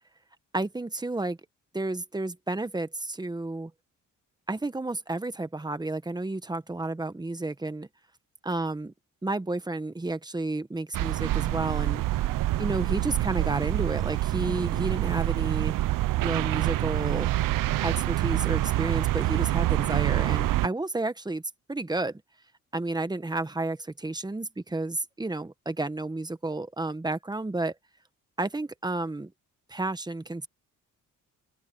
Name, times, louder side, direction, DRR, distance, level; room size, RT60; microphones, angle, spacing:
voice 1, 0.5-1.4 1.7-3.7 4.5-7.9 8.4-8.9 9.2-12.0 12.6-15.8 16.2-17.3 17.8-21.4 21.7-22.2 22.7-27.7 28.4-29.3 29.7-30.5, right 2 dB, 10° right, 1.3 m, -31 dB
sound 1, 10.9-20.7, right 16 dB, 75° right, 0.7 m, -26 dB
open air
cardioid pair, 95°, 33 cm